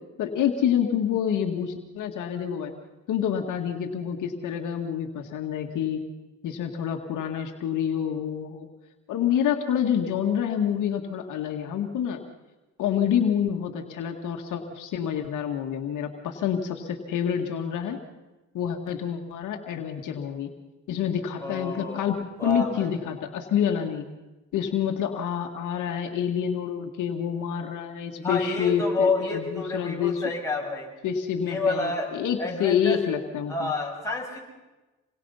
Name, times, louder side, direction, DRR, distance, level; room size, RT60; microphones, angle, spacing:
voice 1, 0.2-2.7 3.1-6.0 6.4-8.7 9.1-12.2 12.8-18.0 18.5-20.5 20.9-24.1 24.5-30.2 31.0-33.7, left 8 dB, 80° left, 4 dB, 2.0 m, -27 dB
voice 2, 21.4-23.0 28.2-30.9 31.4-32.1 32.4-33.0 33.5-34.4, left 3 dB, 10° left, -2 dB, 7.2 m, -29 dB
27.5 x 21.5 x 5.7 m, 1.1 s
cardioid pair, 90°, 30 cm